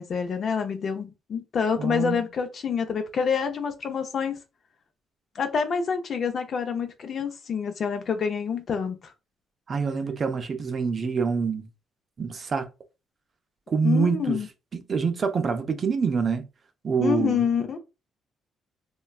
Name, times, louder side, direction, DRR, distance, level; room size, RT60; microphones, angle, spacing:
voice 1, 0.0-4.4 5.3-9.1 13.8-14.5 17.0-17.8, left 6 dB, 55° left, 0.6 m, -27 dB
voice 2, 1.8-2.2 9.7-11.7 12.2-12.7 13.7-14.4 14.9-16.4 16.8-17.4, right 5 dB, 45° right, 0.5 m, -25 dB
3.1 x 2.3 x 2.3 m
cardioid pair, 90°, 0 cm